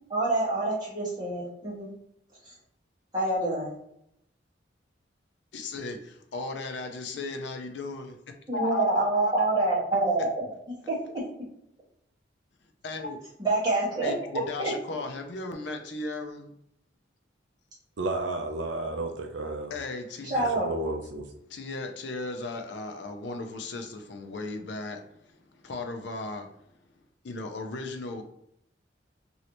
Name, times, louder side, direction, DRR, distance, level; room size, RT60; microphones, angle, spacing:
voice 1, 0.1-1.9 2.4-2.5 3.1-3.7 8.5-10.3 10.9-11.0 13.4-14.1 14.6-14.7 20.2-20.6, right 2 dB, 20° right, -8 dB, 1.4 m, -26 dB
voice 2, 5.5-8.2 8.5-9.5 12.8-13.2 14.0-16.5 19.7-20.6 21.5-26.6 27.2-28.2, left 3 dB, 70° left, 5 dB, 0.4 m, -36 dB
voice 3, 18.0-19.7 20.4-21.2, right 2 dB, 75° right, 4 dB, 0.4 m, -32 dB
3.1 x 2.7 x 2.9 m, 0.77 s
head